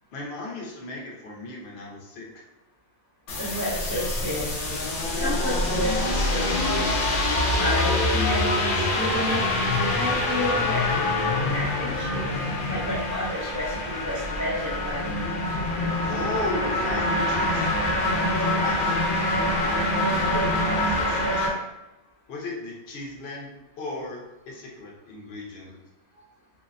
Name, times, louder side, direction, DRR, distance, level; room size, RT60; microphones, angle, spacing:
voice 1, 0.1-2.4 16.0-17.8 18.3-19.0 19.9-21.7 22.3-25.8, left 2 dB, 60° left, -2 dB, 0.8 m, -36 dB
sound 1, 3.3-21.5, left 2 dB, 85° left, 0.4 m, -25 dB
voice 2, 3.4-4.5 5.2-6.5 7.5-9.4 9.9-11.1 11.4-12.3 12.6-15.1, equal, 25° right, -9 dB, 0.4 m, -31 dB
2.6 x 2.1 x 2.4 m, 0.95 s
omnidirectional pair, 1.5 m